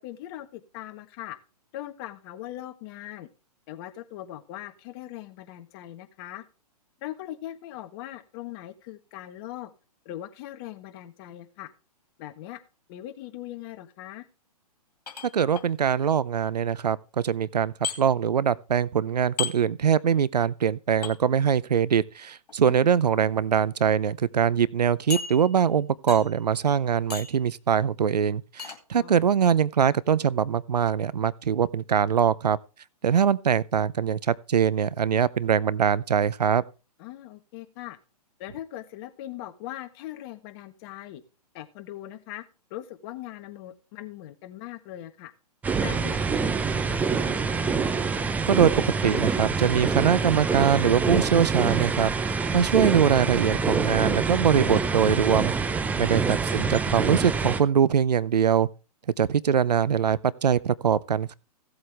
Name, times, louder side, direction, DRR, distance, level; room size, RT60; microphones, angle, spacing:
voice 1, 0.0-1.4 1.7-3.3 3.7-6.4 7.0-9.7 10.0-11.7 12.2-12.6 12.9-14.2 22.6-22.9 29.0-29.1 37.0-38.0 38.4-41.2 41.5-42.4 42.7-45.3 45.8-47.8 55.9-56.1, left 14 dB, 35° left, 1.3 m, -40 dB
sound 1, 15.1-15.7 17.8-18.0 19.4-19.6 21.0-21.1 22.5-22.8 23.5-23.6 24.0-24.1 25.1-25.7 26.1-26.4 27.1-27.4 28.6-28.8, left 7 dB, 80° left, 2.4 m, -34 dB
voice 2, 15.3-17.0 17.2-32.6 33.0-36.6 48.5-52.1 52.5-55.5 56.0-58.7 59.2-61.4, right 8 dB, 85° right, 0.6 m, -23 dB
sound 2, 45.6-57.6, right 5 dB, 10° right, 0.5 m, -26 dB
16.0 x 7.9 x 3.4 m
hypercardioid pair, 130°, 20 cm